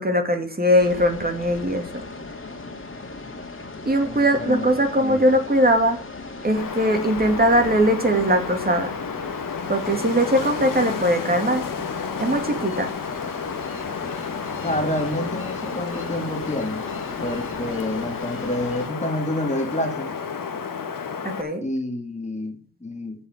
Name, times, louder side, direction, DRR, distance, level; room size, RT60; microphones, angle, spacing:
voice 1, 0.0-1.8 3.9-6.0 6.4-8.9 9.7-11.7 12.2-12.9 21.2-21.6, equal, 25° right, 2.8 m, -20 dB
sound 1, 0.8-18.9, left 3 dB, 35° left, 2.7 m, -37 dB
voice 2, 4.0-5.2 14.6-16.9 17.2-20.1 21.6-23.3, left 1 dB, 20° left, 2.5 m, -28 dB
Wind, 6.6-21.4, left 6 dB, 65° left, 1.8 m, -31 dB
15.5 x 5.5 x 5.3 m
cardioid pair, 60°, 35 cm